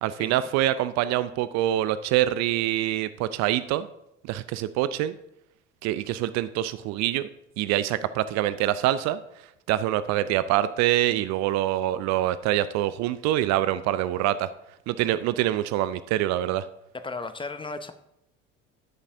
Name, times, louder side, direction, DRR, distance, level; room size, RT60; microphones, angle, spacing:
voice 1, 0.0-3.9 4.3-5.1 5.8-7.3 7.6-9.2 9.7-14.5 14.9-16.7, right 13 dB, 50° right, 15 dB, 0.4 m, -25 dB
voice 2, 16.9-17.9, left 3 dB, 15° left, 10 dB, 0.6 m, -35 dB
13.0 x 7.1 x 2.6 m, 0.82 s
figure-of-eight pair, 65°, 37 cm